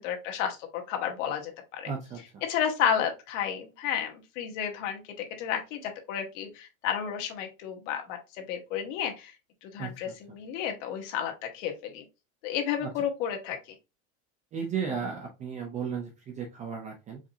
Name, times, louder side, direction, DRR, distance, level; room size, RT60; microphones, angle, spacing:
voice 1, 0.0-1.9 2.4-9.3 9.6-12.0 12.4-13.6, left 8 dB, 65° left, 4 dB, 1.2 m, -32 dB
voice 2, 1.9-2.4 9.8-9.9 12.8-12.9 14.5-17.2, right 6 dB, 20° right, 2 dB, 0.4 m, -34 dB
4.8 x 2.6 x 2.6 m, 0.26 s
supercardioid pair, 155°, 39 cm